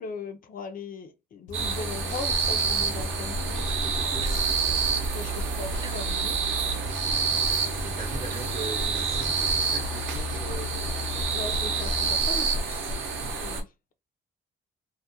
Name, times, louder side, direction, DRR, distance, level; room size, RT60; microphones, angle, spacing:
voice 1, 0.0-3.5 4.0-4.1 5.1-6.4 11.3-12.9 13.3-13.7, left 4 dB, 45° left, 0.4 m, -39 dB
sound 1, 1.5-12.1, left 1 dB, 90° left, 0.7 m, -36 dB
sound 2, 1.5-13.6, right 5 dB, 75° right, 0.6 m, -28 dB
sound 3, 2.3-9.1, equal, 20° right, 0.4 m, -39 dB
voice 2, 3.5-4.5 7.8-10.7, right 4 dB, 45° right, 0.7 m, -40 dB
2.3 x 2.1 x 2.7 m
cardioid pair, 90°, 20 cm